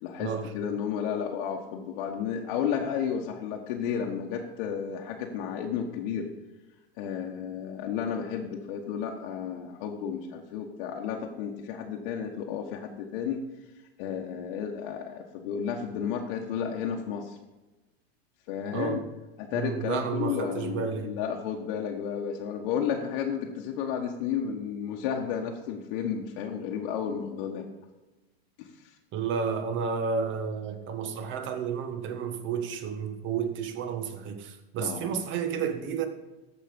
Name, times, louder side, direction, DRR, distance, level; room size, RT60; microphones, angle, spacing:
voice 1, 0.0-6.3 7.0-13.4 14.0-17.4 18.5-19.0 19.4-27.7 28.6-28.9 34.8-35.1, left 7 dB, 55° left, 1.3 m, -32 dB
voice 2, 18.7-19.0 19.5-21.1 29.1-36.1, right 6 dB, 40° right, 1.4 m, -31 dB
14.0 x 5.3 x 5.2 m
hypercardioid pair, 110°, 31 cm